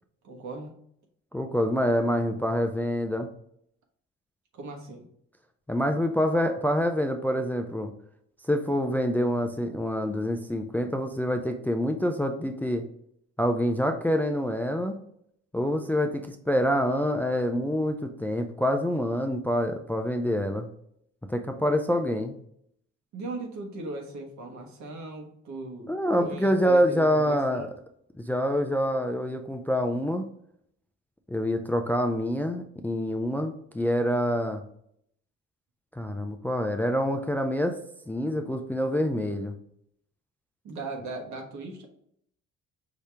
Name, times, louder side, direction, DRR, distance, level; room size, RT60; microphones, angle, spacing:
voice 1, 0.2-0.7 4.5-5.1 23.1-25.9 26.2-27.7 40.6-41.9, right 2 dB, 70° right, 2 dB, 1.2 m, -38 dB
voice 2, 1.3-3.3 5.7-7.9 8.5-12.8 13.4-15.0 15.5-20.7 21.3-22.4 25.9-27.7 28.2-30.2 31.3-34.6 36.0-37.8 38.1-39.5, equal, 5° left, 5 dB, 0.4 m, -26 dB
4.9 x 2.8 x 3.4 m, 0.70 s
cardioid pair, 90°, 30 cm